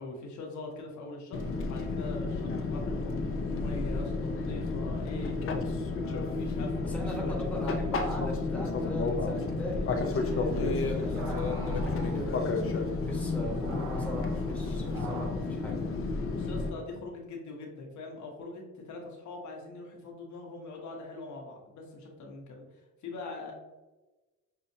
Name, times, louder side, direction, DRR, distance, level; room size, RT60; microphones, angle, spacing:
voice 1, 0.0-5.4 5.9-7.4 16.3-23.5, left 3 dB, 70° left, 0 dB, 1.1 m, -43 dB
Fixed-wing aircraft airplane, 1.3-16.7, left 3 dB, 45° left, 0.6 m, -31 dB
voice 2, 6.8-15.8, equal, 5° left, -3 dB, 1.2 m, -40 dB
sound 1, 10.1-15.3, right 3 dB, 65° right, 0.9 m, -44 dB
5.5 x 2.5 x 2.7 m, 1.1 s
cardioid pair, 90°, 30 cm